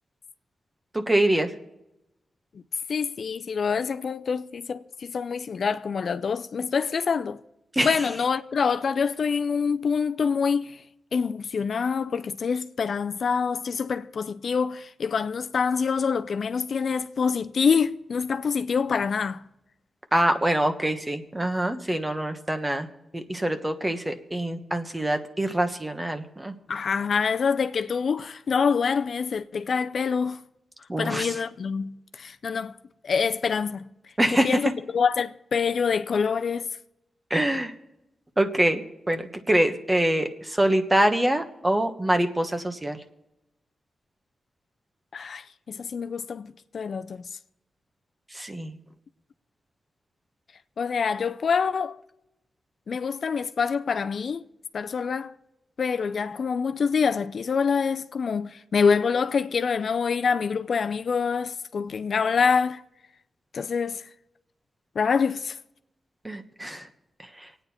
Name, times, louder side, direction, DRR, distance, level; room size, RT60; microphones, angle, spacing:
voice 1, 0.9-1.5 7.7-8.0 20.1-22.9 23.1-26.5 30.9-31.3 34.2-34.6 37.3-37.7 38.4-43.0 48.3-48.7 66.2-66.9 67.4-67.5, right 1 dB, 20° right, 1.4 m, -25 dB
voice 2, 2.9-7.4 7.8-10.8 11.1-19.4 26.7-30.4 31.0-32.8 33.0-33.9 34.3-36.7 45.1-47.3 50.8-52.0 52.9-54.4 54.7-55.3 55.8-62.8 63.5-64.0 65.0-65.6, left 6 dB, 65° left, 0.5 m, -26 dB
24.5 x 9.2 x 4.3 m
cardioid pair, 80°, 0 cm